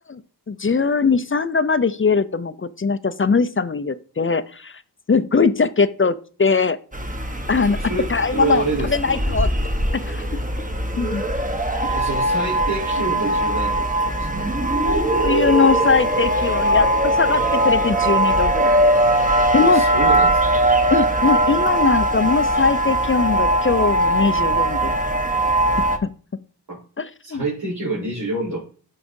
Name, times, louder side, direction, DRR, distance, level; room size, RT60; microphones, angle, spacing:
voice 1, 0.5-4.8 5.1-6.8 7.5-7.8 8.1-9.5 9.9-10.2 11.0-11.2 11.8-11.9 15.2-18.8 19.5-19.8 20.9-25.0 25.8-25.9 27.0-27.4, left 5 dB, 30° left, 14 dB, 0.4 m, -21 dB
sound 1, 6.9-26.0, right 1 dB, 20° right, 1.0 m, -20 dB
voice 2, 7.7-9.2 11.9-13.8 14.1-14.5 19.6-20.6 26.7-26.8 27.2-28.6, right 3 dB, 55° right, -8 dB, 3.6 m, -27 dB
12.5 x 4.8 x 2.6 m, 0.41 s
wide cardioid pair, 50°, 42 cm